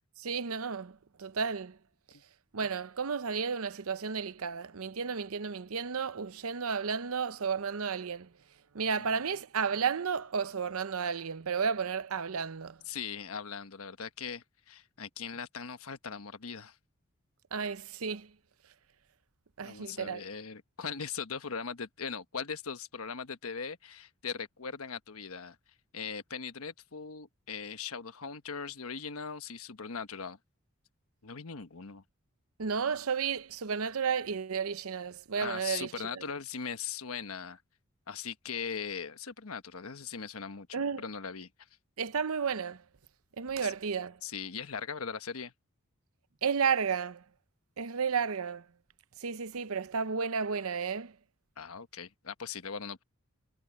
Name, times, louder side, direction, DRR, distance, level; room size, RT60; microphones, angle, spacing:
voice 1, 0.2-1.8 2.5-8.3 8.7-12.8 17.5-18.3 19.6-20.2 32.6-36.3 40.7-41.0 42.0-42.8 43.4-44.2 46.4-47.2 47.8-48.6 49.2-51.1, right 6 dB, 80° right, 0.7 m, -32 dB
voice 2, 12.9-16.8 19.6-25.6 25.9-30.4 31.2-32.0 35.4-37.6 38.1-41.5 43.6-43.7 44.2-45.5 51.6-53.0, left 6 dB, 80° left, 1.2 m, -40 dB
head